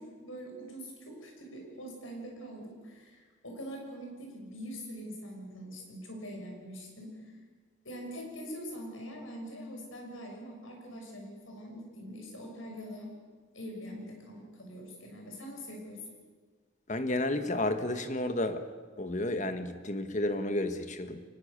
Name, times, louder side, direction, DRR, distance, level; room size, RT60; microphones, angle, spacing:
voice 1, 0.0-7.1 7.8-13.1 13.5-16.0, equal, 80° left, 1 dB, 6.4 m, -43 dB
voice 2, 16.9-18.6 19.0-21.2, left 1 dB, 35° left, 9 dB, 1.5 m, -31 dB
24.0 x 20.0 x 6.8 m, 1.5 s
head